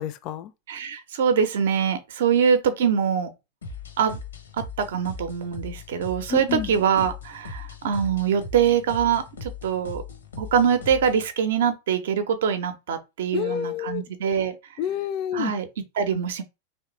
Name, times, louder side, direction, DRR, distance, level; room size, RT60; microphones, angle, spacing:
voice 1, 0.0-0.5 6.3-6.7 13.3-14.0 14.8-15.5, left 10 dB, 40° left, 0.3 m, -28 dB
voice 2, 0.7-3.3 4.0-4.2 4.6-10.0 10.4-14.6 15.3-15.7 16.0-16.4, right 7 dB, 60° right, 0.5 m, -23 dB
sound 1, 3.6-11.3, left 4 dB, 70° left, 0.6 m, -39 dB
3.0 x 2.1 x 2.9 m
figure-of-eight pair, 90°, 0 cm